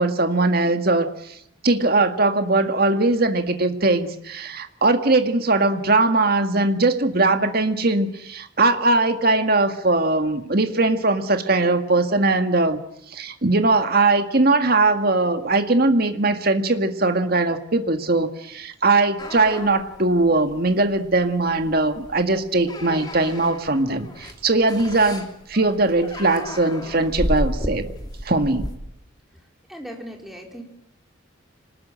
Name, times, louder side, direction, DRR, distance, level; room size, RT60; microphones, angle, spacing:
voice 1, 0.0-1.4 1.6-12.8 13.1-27.9 28.2-28.7, right 2 dB, 50° right, 7 dB, 2.0 m, -20 dB
sound 1, 19.2-28.7, equal, 20° left, 3.2 m, -33 dB
voice 2, 29.7-30.6, equal, ahead, 1 dB, 4.3 m, -37 dB
26.5 x 19.5 x 9.0 m, 0.76 s
head